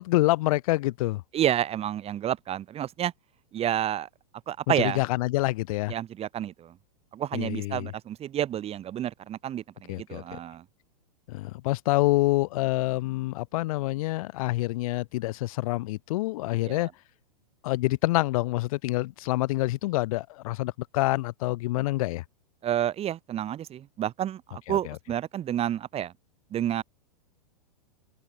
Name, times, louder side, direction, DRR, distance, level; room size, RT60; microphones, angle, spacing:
voice 1, 0.0-1.2 4.8-5.9 7.3-7.9 9.9-10.4 11.3-16.9 17.6-22.2 24.7-25.0, left 19 dB, 60° left, 4.8 m, -27 dB
voice 2, 1.3-3.1 3.5-4.1 4.5-5.0 5.9-6.7 7.1-10.6 16.6-16.9 22.6-26.1 26.5-26.8, right 11 dB, 30° right, 7.0 m, -30 dB
hypercardioid pair, 110°, 20 cm